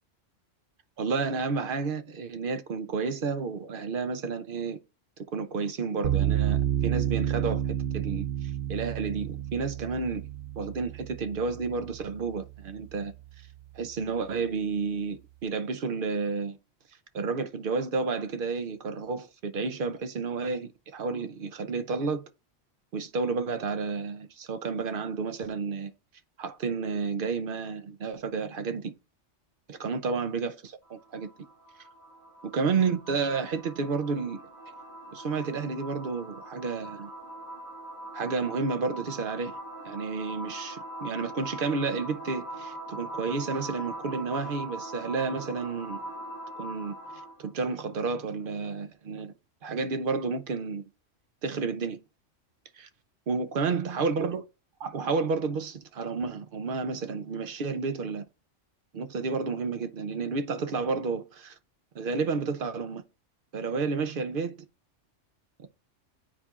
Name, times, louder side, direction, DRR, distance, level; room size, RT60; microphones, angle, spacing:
voice 1, 1.0-4.8 5.2-10.2 10.6-13.1 13.7-16.6 17.1-22.2 22.9-25.9 26.4-28.9 29.7-31.3 32.5-34.4 35.1-37.1 38.1-39.6 39.8-46.0 46.6-49.3 49.6-50.9 51.4-52.0 52.7-52.9 53.3-54.4 54.8-58.2 58.9-61.6 61.9-63.0 63.5-64.6 65.6-65.7, right 4 dB, 50° right, 0.8 m, -31 dB
sound 1, 6.0-13.1, right 11 dB, 70° right, 1.1 m, -30 dB
sound 2, 30.8-47.5, right 1 dB, 35° left, 2.4 m, -41 dB
9.9 x 4.3 x 2.4 m
omnidirectional pair, 1.3 m